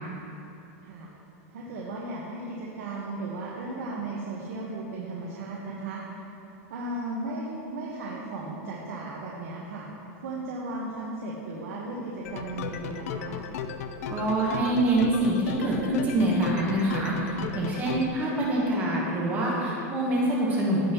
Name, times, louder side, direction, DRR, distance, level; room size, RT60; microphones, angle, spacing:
voice 1, 1.5-6.3 6.7-9.9 10.2-13.4, right 2 dB, 75° right, -4 dB, 1.2 m, -35 dB
sound 1, 12.3-18.1, left 7 dB, 70° left, 0.5 m, -35 dB
voice 2, 14.1-20.9, right 1 dB, 20° right, -4 dB, 1.1 m, -25 dB
15.0 x 5.5 x 3.0 m, 2.9 s
supercardioid pair, 175°, 8 cm